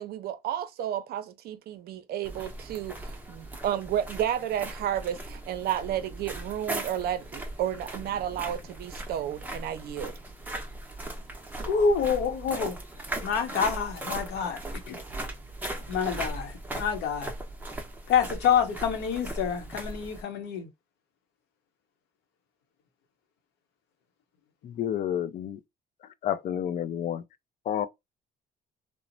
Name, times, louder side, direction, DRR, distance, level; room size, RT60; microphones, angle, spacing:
voice 1, 0.0-10.1, right 11 dB, 65° right, 0.5 m, -32 dB
sound 1, 2.2-20.2, right 2 dB, 10° right, 0.7 m, -38 dB
voice 2, 11.6-12.8 13.2-14.6 14.9-15.0 15.6-17.3 18.1-20.7, left 6 dB, 85° left, 0.8 m, -27 dB
voice 3, 24.6-25.6 26.2-27.2 27.7-27.9, left 10 dB, 50° left, 0.4 m, -30 dB
3.0 x 2.0 x 2.5 m
cardioid pair, 110°, 17 cm